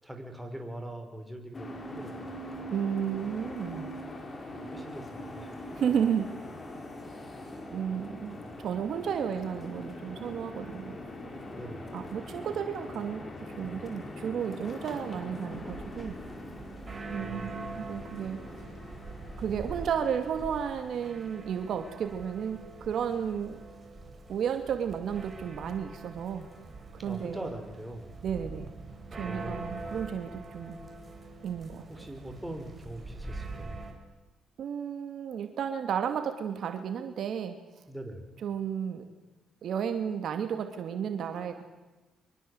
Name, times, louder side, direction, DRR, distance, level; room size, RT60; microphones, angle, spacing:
voice 1, 0.0-2.3 4.6-5.6 11.5-11.9 17.2-18.0 27.0-28.2 29.2-29.9 31.9-33.8 37.9-38.2, right 1 dB, 5° right, 4 dB, 5.4 m, -42 dB
sound 1, 1.5-21.1, left 1 dB, 30° left, 5.4 m, -42 dB
voice 2, 2.7-4.0 5.7-6.3 7.7-11.0 11.9-16.2 17.1-18.4 19.4-23.6 24.3-26.5 27.0-27.5 28.2-28.7 29.1-30.8 31.4-31.9 34.6-37.5 38.4-39.1 39.6-41.6, right 8 dB, 65° right, 7 dB, 2.5 m, -33 dB
sound 2, 15.5-33.9, right 3 dB, 25° right, 6.0 m, -44 dB
25.0 x 24.0 x 8.1 m, 1.1 s
cardioid pair, 90°, 0 cm